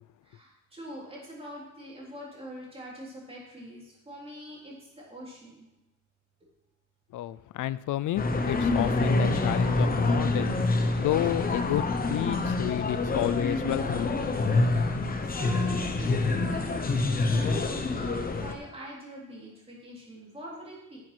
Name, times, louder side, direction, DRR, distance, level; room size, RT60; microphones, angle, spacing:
voice 1, 0.2-5.7 14.7-21.0, equal, 20° right, -4 dB, 3.6 m, -44 dB
voice 2, 7.1-14.2, left 13 dB, 80° left, 18 dB, 0.5 m, -31 dB
sound 1, 8.2-18.5, left 3 dB, 30° left, 0.9 m, -26 dB
9.6 x 7.5 x 6.1 m, 0.92 s
wide cardioid pair, 165°, 30 cm